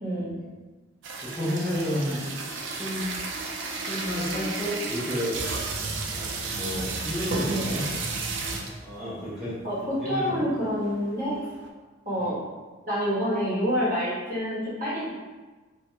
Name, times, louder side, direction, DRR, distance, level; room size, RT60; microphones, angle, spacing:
voice 1, 0.0-0.3 7.4-7.7 9.6-11.5 12.0-12.4 12.8-15.1, equal, 40° right, -10 dB, 1.1 m, -27 dB
sound 1, 1.0-8.9 9.4-9.5 9.7-10.0 10.4-11.7, right 3 dB, 65° right, 0.3 m, -33 dB
voice 2, 1.2-2.2 2.6-3.1 3.8-5.4 6.2-7.9 8.8-9.6 10.0-10.4 12.2-12.3, equal, ahead, -13 dB, 0.5 m, -31 dB
2.3 x 2.1 x 2.8 m, 1.3 s
head